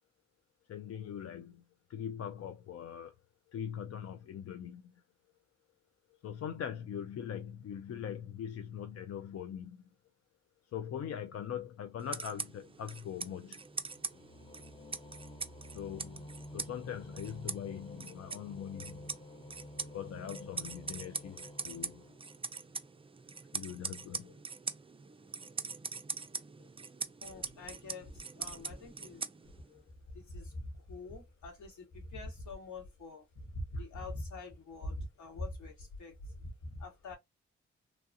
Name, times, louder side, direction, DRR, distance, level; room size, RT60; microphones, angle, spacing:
voice 1, 0.7-1.6 1.9-3.1 3.5-4.9 6.2-9.8 10.7-13.6 15.7-16.3 16.5-19.1 19.9-22.0 23.5-24.4 26.6-26.7 27.3-27.4 29.7-29.8 33.8-33.9, left 9 dB, 55° left, 0.5 m, -42 dB
sound 1, 11.8-22.8, left 1 dB, 20° left, 0.7 m, -51 dB
sound 2, 12.0-29.8, right 4 dB, 20° right, 0.4 m, -43 dB
voice 2, 27.2-29.2 30.1-37.2, left 1 dB, 70° left, 1.6 m, -44 dB
3.1 x 2.3 x 2.7 m
hypercardioid pair, 40°, 31 cm